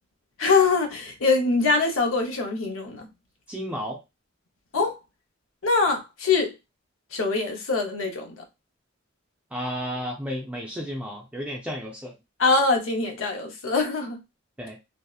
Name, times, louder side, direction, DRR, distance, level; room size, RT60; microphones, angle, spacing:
voice 1, 0.4-3.1 4.7-5.0 5.6-6.5 7.1-8.4 12.4-14.2, left 4 dB, 85° left, 0.7 m, -23 dB
voice 2, 3.5-4.0 9.5-12.1 14.6-14.8, equal, 5° right, 0.4 m, -32 dB
2.7 x 2.0 x 2.3 m
head